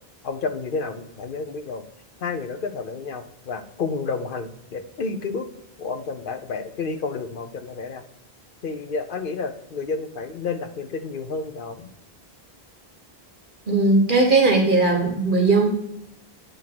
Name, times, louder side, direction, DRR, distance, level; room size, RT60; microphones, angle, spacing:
voice 1, 0.2-1.8 2.2-5.5 5.8-8.0 8.6-11.9, left 4 dB, 60° left, 8 dB, 0.9 m, -30 dB
voice 2, 13.7-15.7, right 3 dB, 55° right, 1 dB, 1.5 m, -18 dB
9.2 x 3.6 x 6.0 m, 0.78 s
omnidirectional pair, 1.1 m